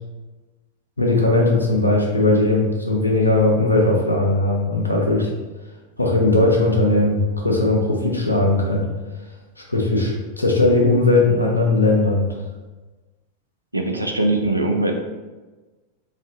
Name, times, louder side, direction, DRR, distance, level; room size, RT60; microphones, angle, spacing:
voice 1, 1.0-5.3 6.0-8.9 9.7-12.3, left 2 dB, 85° left, -1 dB, 0.6 m, -18 dB
voice 2, 13.7-14.9, right 2 dB, 85° right, 2 dB, 0.4 m, -21 dB
3.4 x 2.7 x 2.4 m, 1.2 s
figure-of-eight pair, 90°, 0 cm